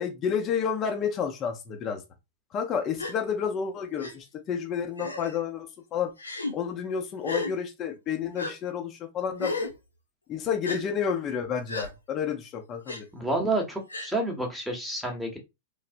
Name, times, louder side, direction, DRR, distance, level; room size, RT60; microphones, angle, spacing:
voice 1, 0.0-2.0 2.5-6.1 6.5-9.7 10.3-13.1, left 7 dB, 30° left, 0.5 m, -30 dB
Gasp, 3.0-3.2 4.0-4.1 5.0-5.4 6.2-6.5 7.2-7.5 8.4-8.5 9.4-9.7 10.6-10.8 11.7-11.9 12.9-13.0 13.9-14.1, left 2 dB, 85° left, 0.5 m, -33 dB
voice 2, 13.1-15.4, right 2 dB, ahead, 0.9 m, -29 dB
3.3 x 2.0 x 2.5 m
figure-of-eight pair, 100°, 0 cm